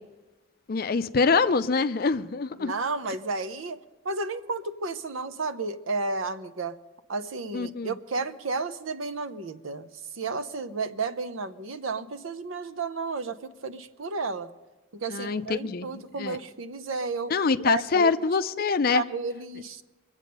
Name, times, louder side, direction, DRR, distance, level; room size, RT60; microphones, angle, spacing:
voice 1, 0.7-2.7 7.5-8.0 15.1-16.4 17.3-19.0, left 4 dB, 45° left, 12 dB, 0.5 m, -25 dB
voice 2, 2.6-3.8 4.0-6.8 7.1-9.9 10.1-14.5 14.9-18.1 18.9-19.8, right 3 dB, 75° right, 11 dB, 0.7 m, -32 dB
23.5 x 8.1 x 5.4 m, 1.2 s
head